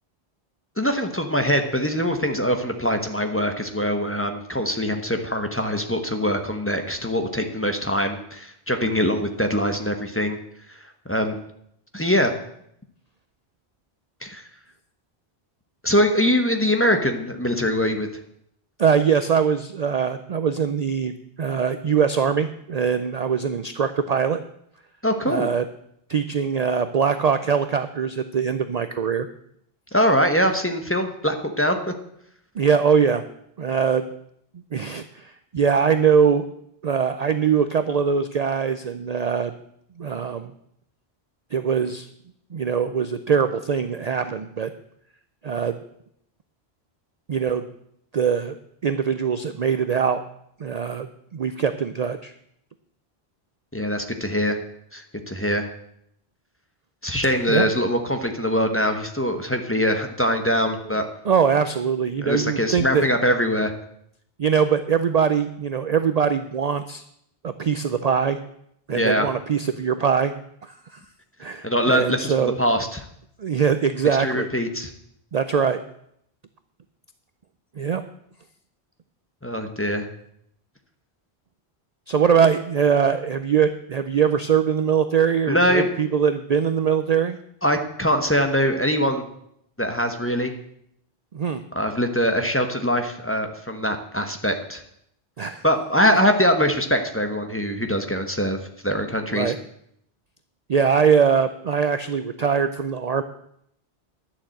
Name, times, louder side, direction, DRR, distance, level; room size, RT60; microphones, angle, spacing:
voice 1, 0.8-10.4 10.7-10.8 11.1-11.4 11.9-12.3 14.2-14.4 15.8-18.1 25.0-25.5 29.9-31.9 53.7-54.6 54.9-55.7 57.0-61.1 62.2-63.7 68.9-69.3 71.6-73.0 74.2-74.9 79.4-80.1 85.5-85.9 87.6-89.2 89.8-90.5 91.7-94.8 95.6-98.6 98.8-99.5, equal, 15° left, 5 dB, 1.1 m, -23 dB
voice 2, 18.8-24.4 25.3-25.6 26.1-29.3 32.6-33.2 33.6-34.0 34.7-36.5 36.8-39.5 40.0-40.5 41.5-42.1 42.5-44.7 45.4-45.8 47.3-47.7 48.1-48.6 48.8-50.2 50.6-51.1 51.3-52.3 57.5-57.7 60.9-61.0 61.2-63.1 64.4-67.0 67.4-68.4 68.9-70.3 70.6-71.0 71.4-72.6 73.4-74.5 75.3-75.8 77.8-78.0 82.1-87.4 91.3-91.6 95.4-95.6 99.3-99.6 100.7-103.2, right 7 dB, 50° right, 10 dB, 0.5 m, -22 dB
11.0 x 7.3 x 7.7 m, 0.72 s
omnidirectional pair, 1.1 m